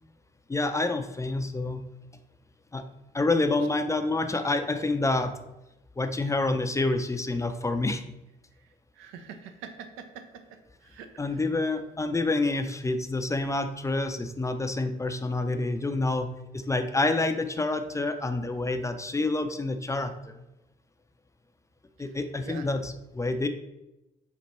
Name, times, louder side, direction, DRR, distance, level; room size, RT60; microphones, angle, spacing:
voice 1, 0.5-1.8 2.7-2.8 3.1-5.3 6.0-8.0 11.2-16.3 16.5-20.3 22.0-23.5, left 2 dB, 15° left, 7 dB, 0.4 m, -28 dB
voice 2, 9.0-10.2 10.8-11.4 22.0-22.1 22.4-22.7, right 7 dB, 85° right, 7 dB, 0.5 m, -44 dB
4.2 x 2.2 x 4.2 m, 0.93 s
supercardioid pair, 60°, 21 cm